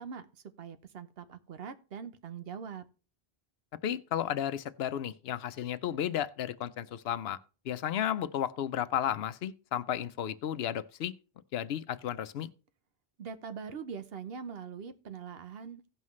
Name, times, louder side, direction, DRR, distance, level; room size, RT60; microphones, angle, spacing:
voice 1, 0.0-2.8 13.2-15.9, right 6 dB, 75° right, 1.0 m, -42 dB
voice 2, 3.8-7.4 7.7-11.1 11.5-12.5, left 10 dB, 80° left, 0.8 m, -33 dB
16.5 x 5.6 x 3.1 m
omnidirectional pair, 1.0 m